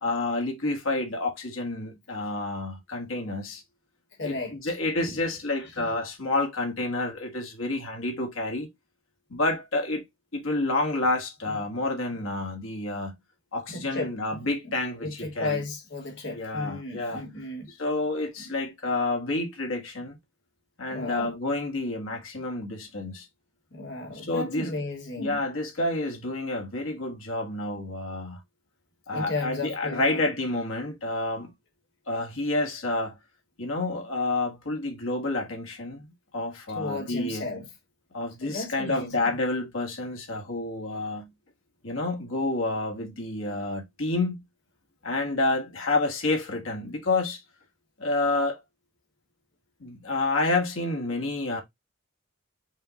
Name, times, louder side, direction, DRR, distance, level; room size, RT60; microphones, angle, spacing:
voice 1, 0.0-3.6 4.2-8.7 9.3-10.0 10.3-13.1 13.5-15.6 16.3-17.2 17.8-20.2 20.8-23.3 24.2-24.7 25.2-28.4 29.1-31.5 32.1-33.2 33.6-36.1 36.3-37.5 38.1-41.3 41.8-44.3 45.0-47.4 48.0-48.6 49.8-51.6, left 2 dB, 75° left, 1.4 m, -29 dB
voice 2, 4.2-4.7 5.0-5.2 5.6-5.9 11.5-11.6 13.7-14.4 14.6-14.7 15.0-17.7 18.4-18.5 20.9-21.3 23.7-25.4 29.1-30.3 36.7-37.7 38.4-39.2, left 2 dB, 55° left, 1.5 m, -34 dB
5.4 x 2.2 x 3.8 m
head